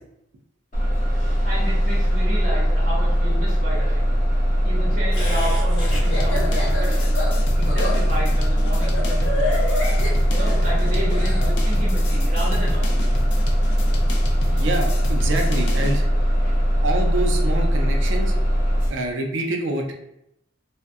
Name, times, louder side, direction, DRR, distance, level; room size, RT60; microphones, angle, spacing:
Bus, 0.7-18.9, equal, 40° left, 0.9 m, -20 dB
voice 1, 1.4-4.2 4.6-7.2 7.6-9.6 10.3-13.3 14.5-15.0 16.3-16.7, equal, 40° right, -6 dB, 0.8 m, -32 dB
Laughter, 5.1-11.5, left 1 dB, 90° left, 0.8 m, -29 dB
sound 1, 5.9-16.0, left 2 dB, 60° left, 0.4 m, -34 dB
voice 2, 14.6-16.1 16.8-18.3 18.9-19.9, right 2 dB, 80° right, 2 dB, 0.4 m, -26 dB
2.3 x 2.1 x 2.5 m, 0.80 s
head